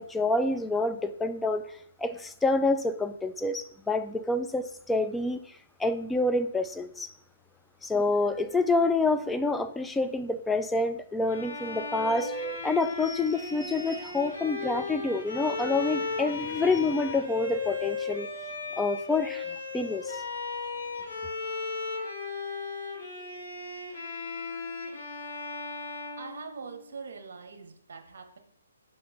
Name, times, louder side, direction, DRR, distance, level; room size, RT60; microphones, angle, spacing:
voice 1, 0.0-7.1 7.8-18.3 18.8-19.5 19.7-20.2, left 3 dB, 5° left, 0.3 m, -28 dB
Bowed string instrument, 11.3-27.0, left 4 dB, 55° left, 2.2 m, -36 dB
voice 2, 26.2-28.4, right 5 dB, 60° right, 1.1 m, -43 dB
5.4 x 4.2 x 5.5 m
figure-of-eight pair, 135°, 0 cm